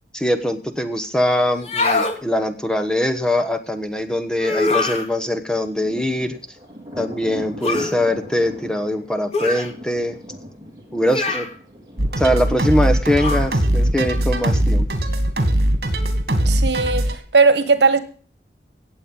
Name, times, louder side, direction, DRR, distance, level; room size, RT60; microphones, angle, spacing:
voice 1, 0.1-6.4 7.0-10.2 10.9-11.5 12.2-14.9, left 1 dB, 5° left, 1.1 m, -22 dB
sound 1, 1.5-2.2 4.4-5.1 7.6-7.9 9.3-9.7 11.1-11.5 13.2-13.5, left 3 dB, 35° left, 2.0 m, -23 dB
Thunder, 5.3-14.8, equal, 20° right, 4.1 m, -39 dB
sound 2, 12.0-17.1, right 1 dB, 65° right, 2.5 m, -20 dB
voice 2, 16.4-18.0, right 4 dB, 80° right, 1.4 m, -17 dB
17.5 x 7.8 x 5.4 m
head